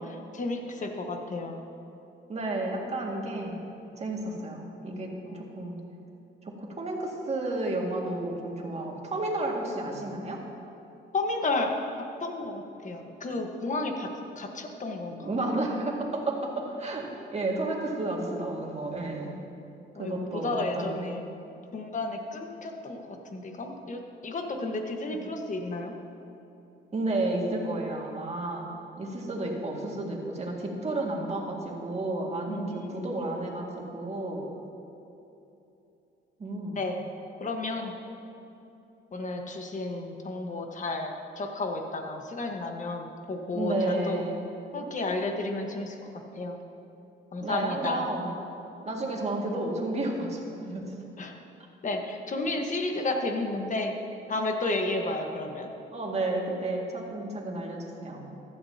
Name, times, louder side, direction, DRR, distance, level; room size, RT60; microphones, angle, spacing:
voice 1, 0.0-1.6 5.3-5.6 11.1-15.3 19.9-21.2 21.7-26.0 32.5-33.1 36.8-37.0 37.4-37.9 39.1-44.2 44.7-46.1 46.4-46.6 47.3-48.0 51.2-51.3 51.8-53.9 54.3-55.7, left 2 dB, 40° left, 3 dB, 1.4 m, -32 dB
voice 2, 2.3-3.6 4.0-5.8 6.4-10.4 15.2-19.3 20.0-21.0 25.1-25.2 26.9-34.5 36.4-36.8 43.5-44.4 47.4-48.3 48.9-50.9 55.9-58.3, right 2 dB, 35° right, -1 dB, 2.1 m, -32 dB
15.0 x 11.5 x 2.9 m, 2.9 s
cardioid pair, 90°, 20 cm